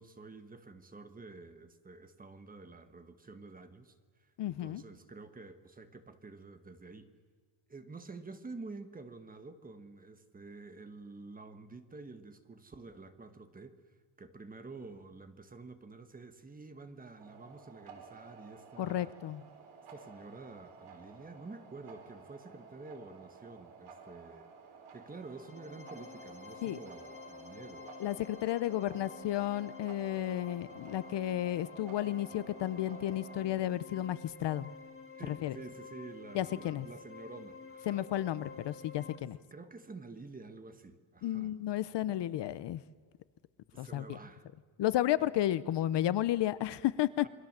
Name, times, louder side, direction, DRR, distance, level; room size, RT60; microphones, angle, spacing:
voice 1, 0.0-7.1 7.7-13.8 14.2-19.1 19.9-24.5 24.9-27.9 35.2-38.0 39.2-41.5 43.7-44.5, right 3 dB, 15° right, 9 dB, 1.4 m, -49 dB
voice 2, 4.4-4.8 18.8-19.4 26.6-26.8 28.0-34.7 35.3-35.6 36.3-36.9 37.9-39.4 41.2-42.8 43.8-44.2 44.8-47.3, left 13 dB, 60° left, 16 dB, 0.8 m, -32 dB
sound 1, 17.2-33.5, right 5 dB, 75° right, 4.3 m, -54 dB
sound 2, 25.1-39.2, left 5 dB, 25° left, 2.6 m, -50 dB
28.0 x 22.5 x 7.4 m, 1.5 s
cardioid pair, 175°, 49 cm